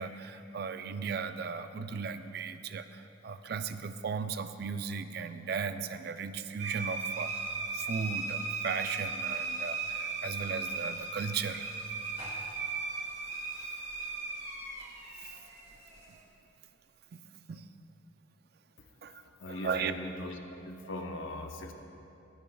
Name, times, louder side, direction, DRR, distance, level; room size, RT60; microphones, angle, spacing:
voice 1, 0.0-7.3 7.7-11.7 15.2-15.3 17.1-17.7 19.0-19.2 19.5-19.9, right 5 dB, 50° right, 10 dB, 0.4 m, -36 dB
sound 1, 6.6-16.2, right 4 dB, 30° right, 1.2 m, -37 dB
voice 2, 19.4-20.4 20.6-21.7, left 1 dB, 75° left, 4 dB, 0.9 m, -39 dB
22.5 x 9.9 x 2.3 m, 2.8 s
head